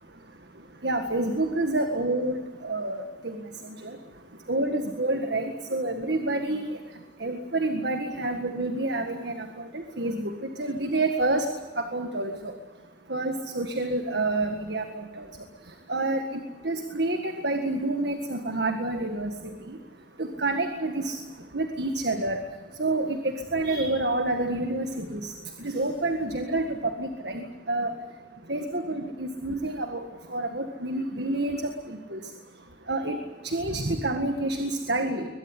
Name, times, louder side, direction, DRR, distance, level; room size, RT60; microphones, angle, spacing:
voice 1, 0.8-3.4 4.5-6.7 7.2-9.3 10.0-10.3 10.6-11.5 11.8-12.3 13.1-14.8 15.2-15.3 15.9-16.2 16.6-19.3 20.2-21.2 21.5-22.4 22.8-23.2 23.5-25.3 25.6-26.7 27.0-27.9 28.5-30.0 30.3-31.7 32.1-32.2 32.9-33.2 33.5-35.3, right 2 dB, 60° right, 6 dB, 1.8 m, -28 dB
22.5 x 22.0 x 9.9 m, 1.4 s
head